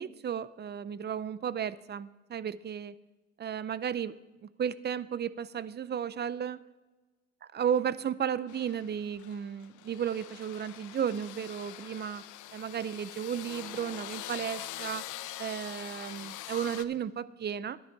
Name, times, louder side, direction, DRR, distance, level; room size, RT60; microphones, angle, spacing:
voice 1, 0.0-3.0 3.4-4.2 4.4-6.6 7.5-12.2 12.5-15.0 15.4-17.8, right 8 dB, 35° right, 18 dB, 0.4 m, -34 dB
sound 1, 8.5-16.8, left 13 dB, 80° left, 0.6 m, -44 dB
10.5 x 10.5 x 4.6 m, 1.2 s
cardioid pair, 90°, 30 cm